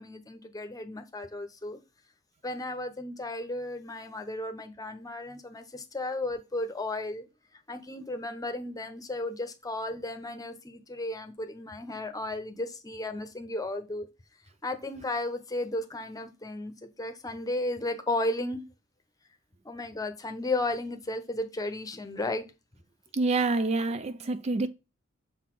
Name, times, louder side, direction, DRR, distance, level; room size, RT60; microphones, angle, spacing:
voice 1, 0.0-1.8 2.4-7.3 7.7-14.1 14.6-16.7 17.0-18.6 19.6-22.4, left 2 dB, 20° left, 0.9 m, -34 dB
voice 2, 23.2-24.7, right 3 dB, 35° right, 0.4 m, -27 dB
6.7 x 4.0 x 4.6 m
head